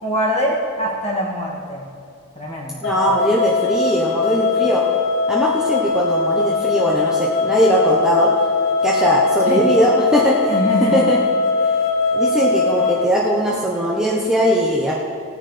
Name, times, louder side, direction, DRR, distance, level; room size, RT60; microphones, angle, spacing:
voice 1, 0.0-1.8 2.4-2.8 9.5-9.6 10.5-11.1, equal, 30° left, -4 dB, 2.2 m, -23 dB
sound 1, 2.8-13.1, left 4 dB, 70° left, 0.9 m, -20 dB
voice 2, 2.8-4.8 5.3-8.3 8.8-10.6 10.8-11.2 12.1-14.9, equal, 5° right, -5 dB, 0.9 m, -19 dB
18.0 x 9.7 x 3.4 m, 2.3 s
head